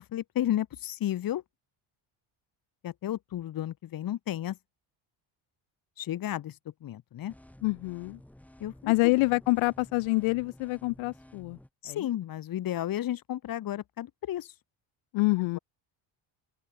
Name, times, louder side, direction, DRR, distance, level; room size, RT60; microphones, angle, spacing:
voice 1, 0.0-1.4 2.8-4.6 6.0-6.6 6.8-7.3 8.6-9.1 11.8-14.5, left 12 dB, 45° left, 1.9 m, -33 dB
sound 1, 7.3-11.7, left 1 dB, 5° left, 6.7 m, -53 dB
voice 2, 7.6-8.2 8.8-11.6 11.9-12.1 15.1-15.6, left 23 dB, 85° left, 1.1 m, -26 dB
cardioid pair, 145°, 46 cm